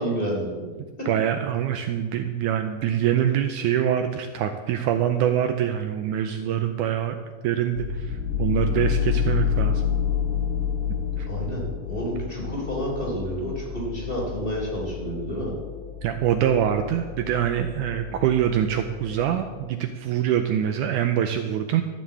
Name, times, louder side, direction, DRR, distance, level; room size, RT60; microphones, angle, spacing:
voice 1, 0.0-1.1 11.3-15.5, equal, 15° left, -4 dB, 3.5 m, -30 dB
voice 2, 1.1-7.2 7.4-9.8 11.2-11.3 16.0-21.8, right 10 dB, 80° right, 7 dB, 1.9 m, -24 dB
sound 1, 7.8-19.7, left 8 dB, 50° left, 4.8 m, -29 dB
13.0 x 7.5 x 8.4 m, 1.4 s
omnidirectional pair, 4.0 m